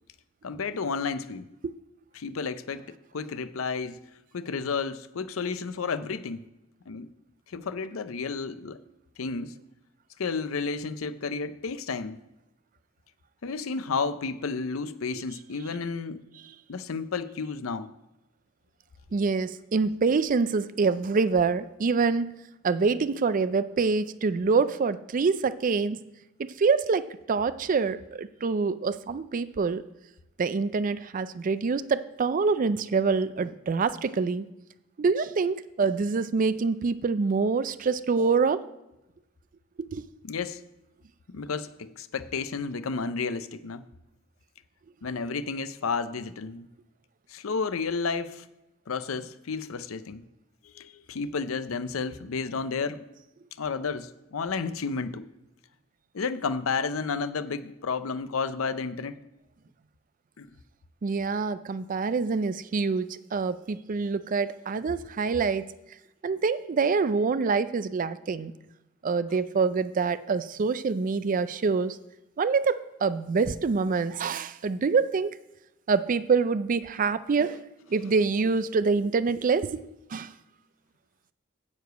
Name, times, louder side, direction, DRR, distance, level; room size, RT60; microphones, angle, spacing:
voice 1, 0.4-1.5 2.1-4.0 4.3-6.4 6.9-7.1 7.5-8.8 9.2-9.6 10.2-12.2 13.4-16.3 16.7-17.9 40.2-40.6 41.3-43.8 45.0-46.7 47.3-48.5 48.9-50.2 50.7-53.0 53.6-55.3 56.1-59.2 60.4-60.5, left 4 dB, 80° left, 0.6 m, -32 dB
voice 2, 19.1-22.3 22.6-26.0 26.4-29.8 30.4-34.5 35.0-38.7 39.8-40.0 61.0-65.7 66.2-68.5 69.0-72.0 72.4-75.4 75.9-79.8 80.1-80.3, right 4 dB, 40° right, 0.4 m, -26 dB
9.5 x 4.9 x 8.0 m
head